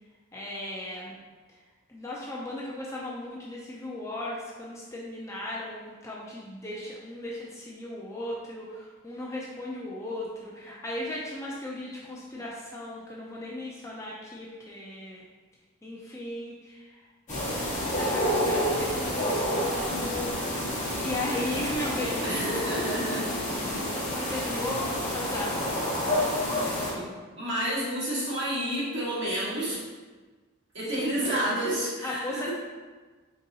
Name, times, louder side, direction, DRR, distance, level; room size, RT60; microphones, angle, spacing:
voice 1, 0.3-1.2 1.9-15.2 15.8-17.0 17.9-20.3 21.0-22.3 24.1-25.7 27.5-27.8 30.9-31.2 32.0-32.5, left 1 dB, 15° left, -4 dB, 0.4 m, -36 dB
sound 1, 17.3-26.9, equal, 35° left, 1.1 m, -29 dB
voice 2, 22.2-23.3 26.9-27.1 27.4-29.8 30.7-32.5, right 1 dB, 55° right, -8 dB, 1.5 m, -29 dB
4.0 x 3.6 x 2.7 m, 1.3 s
head